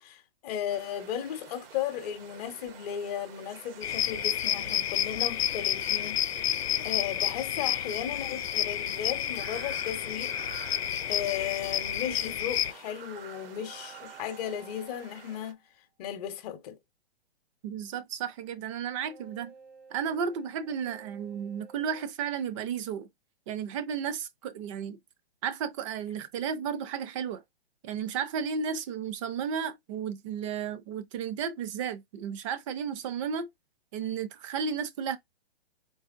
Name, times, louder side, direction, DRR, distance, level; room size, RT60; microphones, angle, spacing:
voice 1, 0.0-6.5 6.8-10.4 11.1-15.6 16.0-16.8, left 10 dB, 40° left, 0.8 m, -35 dB
sound 1, 0.7-15.5, right 7 dB, 60° right, 0.8 m, -49 dB
sound 2, 3.8-12.7, left 10 dB, 75° left, 0.5 m, -30 dB
sound 3, 13.4-15.7 18.9-22.1, right 6 dB, 80° right, 1.9 m, -53 dB
voice 2, 17.6-19.5 19.9-23.1 23.5-25.0 25.4-27.4 27.8-33.5 33.9-35.2, right 7 dB, 30° right, 0.5 m, -33 dB
4.0 x 3.0 x 2.5 m
hypercardioid pair, 135°, 32 cm